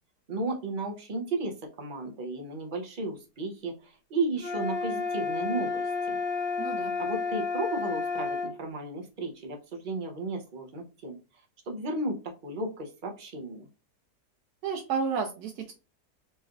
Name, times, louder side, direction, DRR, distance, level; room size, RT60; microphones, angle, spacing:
voice 1, 0.3-6.2 7.0-11.2 11.7-13.7, right 2 dB, 45° right, 3 dB, 0.7 m, -34 dB
sound 1, 4.4-8.5, left 4 dB, 10° left, 0.5 m, -31 dB
voice 2, 6.6-6.9 14.6-15.7, right 5 dB, 75° right, 2 dB, 1.2 m, -31 dB
4.3 x 3.2 x 2.4 m, 0.31 s
omnidirectional pair, 1.7 m